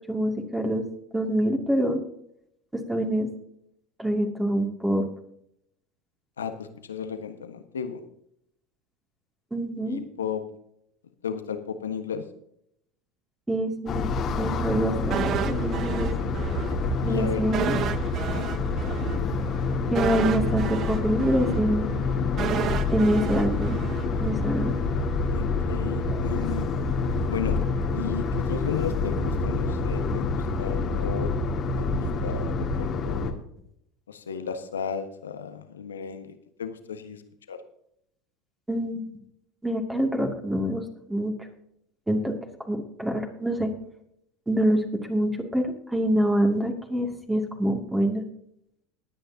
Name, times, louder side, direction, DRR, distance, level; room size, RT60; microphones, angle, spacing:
voice 1, 0.1-0.8 1.1-2.0 2.7-3.3 4.0-5.0 9.5-10.0 13.5-16.1 17.1-17.8 19.9-21.9 22.9-23.8 24.2-24.7 26.1-26.4 38.7-39.0 39.6-40.8 41.1-41.4 42.1-42.3 42.7-43.7 44.5-48.3, right 1 dB, 10° right, 2 dB, 2.5 m, -26 dB
voice 2, 6.4-8.0 9.8-10.4 11.2-12.2 17.1-17.4 18.3-18.5 25.3-26.7 27.3-27.6 27.9-31.3 31.8-33.4 34.1-37.2 37.5-37.6, left 6 dB, 85° left, 8 dB, 1.4 m, -34 dB
sound 1, 13.9-33.3, left 3 dB, 40° left, 2.0 m, -27 dB
sound 2, 15.1-16.7 17.0-17.1 17.5-24.6 24.9-25.0, right 9 dB, 45° right, 0.9 m, -32 dB
20.5 x 9.2 x 2.8 m, 0.73 s
hypercardioid pair, 80°, 0 cm